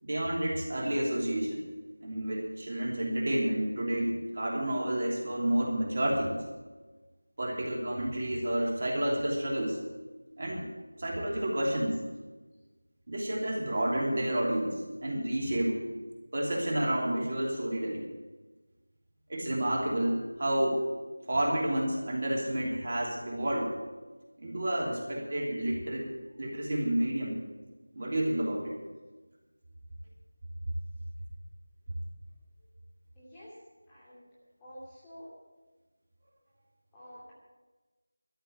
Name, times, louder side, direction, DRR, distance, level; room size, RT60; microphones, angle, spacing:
voice 1, 0.0-1.6 2.0-6.4 7.4-9.8 10.4-10.7 11.0-12.0 13.1-15.8 16.3-18.1 19.3-20.8 21.3-23.7 24.4-26.1 26.4-27.4 27.9-28.8, right 1 dB, 40° right, -2 dB, 3.0 m, -30 dB
voice 2, 33.1-33.6 33.9-34.3 34.6-35.3 36.9-37.3, equal, 10° left, -10 dB, 2.5 m, -49 dB
13.0 x 7.1 x 9.5 m, 1.2 s
figure-of-eight pair, 175°, 0 cm